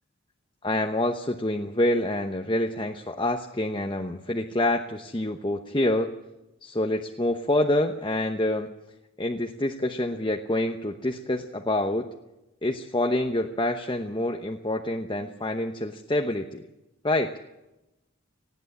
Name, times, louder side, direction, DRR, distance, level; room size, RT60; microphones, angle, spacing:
voice 1, 0.6-6.1 6.6-8.7 9.2-12.1 12.6-16.7 17.0-17.3, left 1 dB, 20° left, 4 dB, 0.9 m, -27 dB
19.5 x 16.0 x 8.6 m, 0.95 s
head